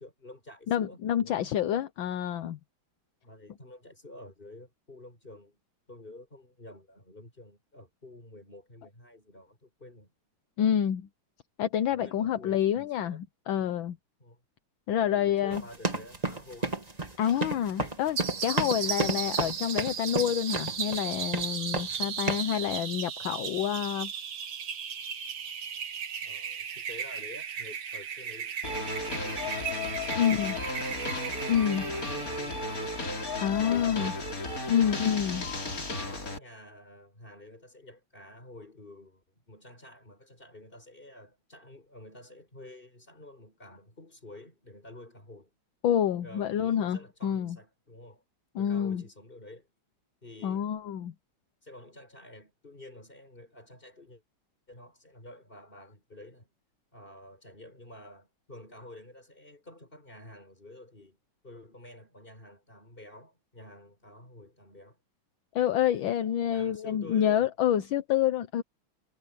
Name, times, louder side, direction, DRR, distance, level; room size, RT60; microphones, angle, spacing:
voice 1, 0.0-1.4 3.2-5.6 5.9-10.1 11.9-13.2 14.2-14.4 14.9-16.7 26.2-33.0 33.6-34.4 34.7-35.4 36.0-45.5 46.2-48.2 48.5-49.7 50.2-50.7 51.6-54.2 54.7-56.5 56.9-61.2 61.4-65.0 66.4-67.5, left 1 dB, 25° left, 6.3 m, -50 dB
voice 2, 0.7-2.6 10.6-11.1 11.6-14.0 14.9-15.6 17.2-24.1 30.2-30.5 31.5-31.9 33.4-34.1 34.7-35.4 45.8-47.6 48.5-49.0 50.4-51.1 65.5-68.6, left 9 dB, 70° left, 1.6 m, -28 dB
sound 1, 15.5-21.1 21.3-22.0 22.3-22.6, right 2 dB, 20° right, 2.3 m, -32 dB
sound 2, 18.2-33.4, right 7 dB, 75° right, 2.4 m, -36 dB
sound 3, 28.6-36.4, left 2 dB, 40° left, 3.9 m, -34 dB
omnidirectional pair, 2.3 m